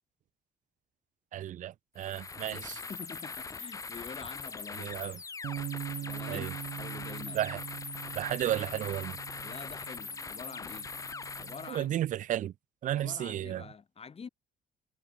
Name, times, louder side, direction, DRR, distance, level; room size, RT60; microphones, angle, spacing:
voice 1, 1.3-2.8 4.8-5.2 6.3-6.5 7.3-7.6 8.1-9.2 11.7-12.5 12.8-13.6, right 12 dB, 50° right, 0.4 m, -33 dB
sound 1, 2.0-11.9, left 4 dB, 20° left, 0.5 m, -42 dB
voice 2, 2.5-4.9 6.0-7.4 9.4-10.9 11.4-12.0 12.9-14.3, left 6 dB, 35° left, 4.8 m, -46 dB
Bass guitar, 5.4-11.7, right 13 dB, 70° right, 2.8 m, -43 dB
cardioid pair, 100°, 17 cm